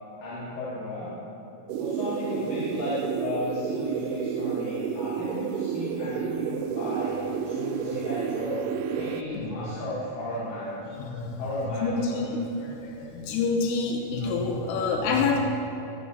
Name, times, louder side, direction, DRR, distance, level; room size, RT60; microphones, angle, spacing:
voice 1, 0.2-1.2 1.8-10.9 11.4-12.3, left 1 dB, 60° left, -9 dB, 3.8 m, -34 dB
sound 1, 1.7-9.2, right 7 dB, 80° right, 2.5 m, -30 dB
voice 2, 11.0-11.5 11.8-15.4, left 4 dB, 90° left, 0 dB, 3.1 m, -27 dB
21.0 x 7.5 x 4.1 m, 2.8 s
omnidirectional pair, 4.5 m